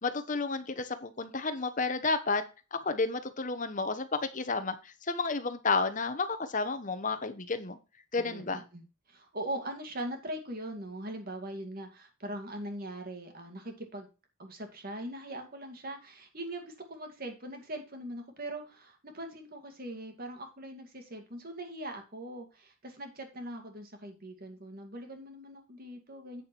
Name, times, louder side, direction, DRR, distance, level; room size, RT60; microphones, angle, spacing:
voice 1, 0.0-2.4 2.7-7.8 8.1-8.6, left 4 dB, 40° left, 10 dB, 1.0 m, -31 dB
voice 2, 8.2-14.1 14.4-26.4, right 1 dB, 45° right, 5 dB, 2.2 m, -41 dB
8.7 x 6.6 x 4.4 m, 0.30 s
head